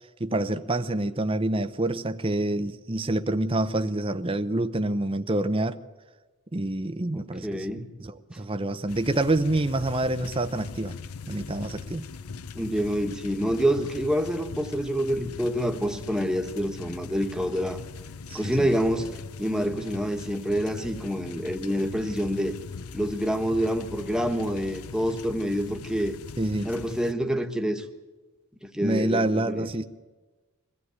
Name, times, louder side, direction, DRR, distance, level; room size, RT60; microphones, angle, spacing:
voice 1, 0.2-5.8 6.5-7.7 8.0-10.9 11.3-12.1 18.3-18.7 25.6-25.7 26.4-26.7 28.8-29.8, right 2 dB, 25° right, 0.6 m, -27 dB
voice 2, 7.1-7.9 12.5-17.8 18.3-22.6 22.9-26.1 26.6-27.8 28.6-29.7, equal, 5° right, 1.4 m, -27 dB
sound 1, 8.9-27.1, left 5 dB, 80° left, 0.6 m, -41 dB
22.5 x 15.5 x 9.5 m
head